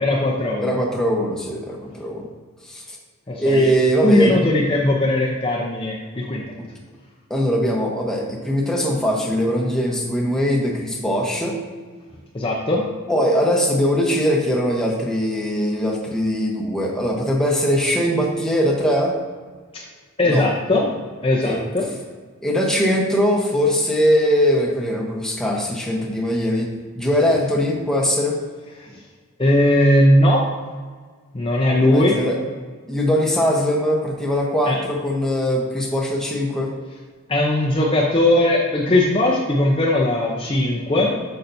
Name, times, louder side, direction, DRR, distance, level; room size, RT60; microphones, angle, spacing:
voice 1, 0.0-0.7 3.3-3.7 4.0-6.4 12.3-12.9 19.7-19.8 20.2-20.9 21.2-21.9 28.8-29.0 29.4-30.5 31.3-32.2 34.7-34.8 37.3-41.2, left 1 dB, 25° left, -2 dB, 0.7 m, -19 dB
voice 2, 0.6-2.3 2.6-3.0 3.4-4.4 6.6-6.7 7.3-11.6 13.1-19.2 20.2-20.5 21.4-21.6 22.4-26.7 26.9-28.4 31.8-32.4 32.9-36.7, equal, ahead, -2 dB, 1.0 m, -21 dB
8.5 x 6.7 x 2.7 m, 1.5 s
head